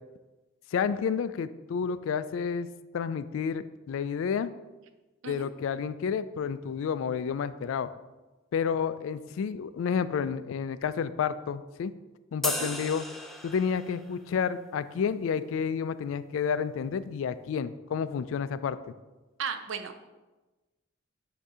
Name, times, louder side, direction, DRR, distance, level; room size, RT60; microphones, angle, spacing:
voice 1, 0.7-2.7 2.9-4.5 5.3-7.9 8.5-11.9 12.3-13.0 13.4-18.8, left 6 dB, 70° left, 15 dB, 0.3 m, -30 dB
sound 1, 12.4-14.0, left 1 dB, ahead, 0.4 m, -35 dB
voice 2, 19.4-20.1, right 6 dB, 65° right, 8 dB, 0.5 m, -36 dB
7.9 x 2.7 x 4.8 m, 1.1 s
head